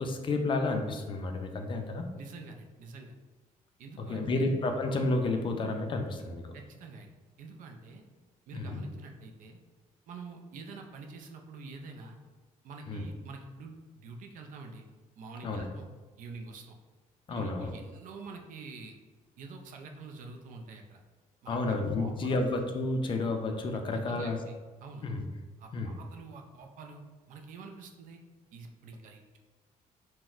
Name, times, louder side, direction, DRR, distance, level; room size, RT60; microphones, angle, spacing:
voice 1, 0.0-2.0 4.0-6.5 8.5-8.8 12.9-13.0 15.4-15.7 17.3-17.7 21.5-24.4 25.0-25.2 25.7-26.0, left 2 dB, 35° left, 4 dB, 0.4 m, -31 dB
voice 2, 2.2-3.1 3.8-4.5 6.5-7.1 7.4-8.0 8.5-9.6 10.1-12.2 12.6-14.9 15.2-15.8 16.2-16.8 17.3-18.9 19.4-21.0 21.4-22.4 23.9-24.6 24.8-25.0 25.6-27.0 27.3-28.2 28.5-29.4, right 4 dB, 70° right, 3 dB, 0.4 m, -46 dB
4.0 x 2.1 x 2.4 m, 1.3 s
cardioid pair, 125°, 14 cm